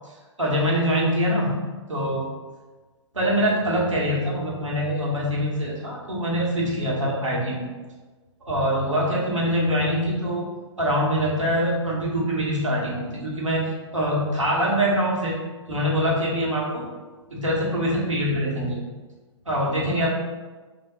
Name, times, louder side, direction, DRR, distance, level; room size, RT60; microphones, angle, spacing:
voice 1, 0.4-1.5 1.9-2.3 3.1-7.7 8.4-10.4 10.8-15.4 15.7-16.8 17.3-18.8 19.5-20.1, equal, 85° right, -4 dB, 1.0 m, -24 dB
2.7 x 2.2 x 3.3 m, 1.3 s
figure-of-eight pair, 120°, 16 cm